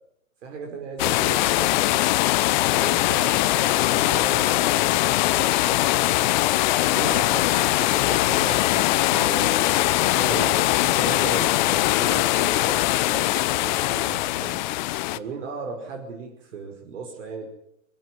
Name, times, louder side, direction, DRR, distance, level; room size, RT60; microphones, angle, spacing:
voice 1, 0.4-2.2 2.8-6.3 6.9-9.7 10.2-14.6 15.2-17.5, right 5 dB, 60° right, 1 dB, 5.4 m, -36 dB
sound 1, 1.0-15.2, left 17 dB, 35° left, 0.9 m, -21 dB
sound 2, 6.7-13.6, left 11 dB, 70° left, 1.1 m, -37 dB
23.5 x 16.5 x 9.4 m, 0.79 s
hypercardioid pair, 125°, 41 cm